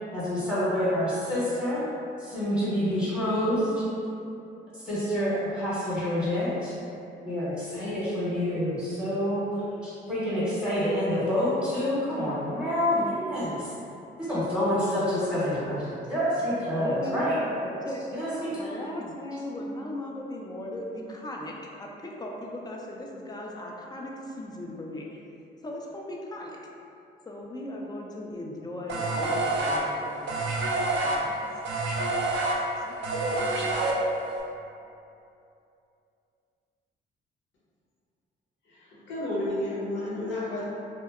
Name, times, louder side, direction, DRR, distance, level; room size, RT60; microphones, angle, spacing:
voice 1, 0.1-1.8 2.2-3.8 4.7-6.7 7.2-13.7 14.2-17.4 18.1-19.1, equal, 5° right, -11 dB, 0.8 m, -28 dB
voice 2, 16.6-21.5 21.8-25.2 25.6-26.6 27.3-30.4 31.0-31.3 32.9-33.0, left 1 dB, 20° left, -1 dB, 0.3 m, -38 dB
sound 1, 28.9-34.4, right 2 dB, 65° right, 0.4 m, -27 dB
voice 3, 38.7-40.6, left 1 dB, 70° left, -7 dB, 0.8 m, -31 dB
2.7 x 2.1 x 2.3 m, 2.7 s
cardioid pair, 90°, 20 cm